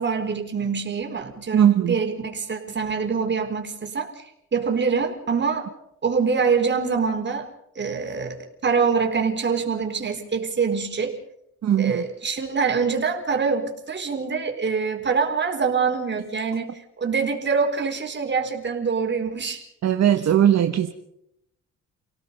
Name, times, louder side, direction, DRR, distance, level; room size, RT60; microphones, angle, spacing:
voice 1, 0.0-4.2 4.5-5.7 6.0-7.5 7.8-8.4 8.6-11.1 11.7-19.6, right 5 dB, 35° right, 4 dB, 4.5 m, -25 dB
voice 2, 1.5-1.9 11.6-12.0 19.8-20.9, right 10 dB, 60° right, 6 dB, 1.4 m, -18 dB
30.0 x 17.5 x 5.5 m, 0.80 s
cardioid pair, 90°, 30 cm